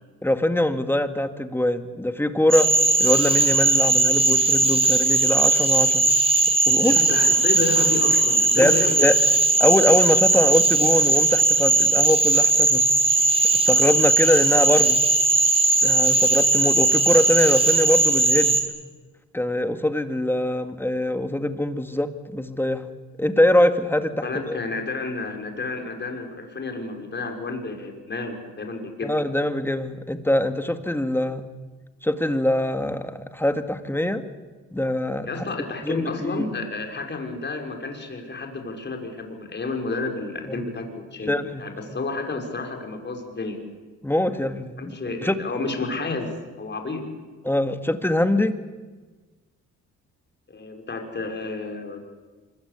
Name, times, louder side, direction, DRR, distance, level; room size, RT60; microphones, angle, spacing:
voice 1, 0.2-2.7 3.0-6.1 6.7-7.1 8.6-9.1 9.6-12.9 13.7-15.0 15.8-18.6 19.3-22.8 23.2-24.6 29.0-31.5 32.0-34.2 34.7-35.3 35.8-36.5 40.5-40.7 41.3-41.7 44.0-44.9 45.2-45.4 47.4-48.6, left 1 dB, 5° left, 8 dB, 2.1 m, -23 dB
Cricket / Frog, 2.5-18.6, right 2 dB, 20° right, 4.7 m, -19 dB
voice 2, 6.7-9.1 24.2-29.1 35.3-41.3 41.6-43.6 44.4-47.1 50.5-52.0, left 3 dB, 35° left, 4 dB, 5.7 m, -31 dB
25.5 x 23.5 x 8.4 m, 1.3 s
cardioid pair, 90°, 30 cm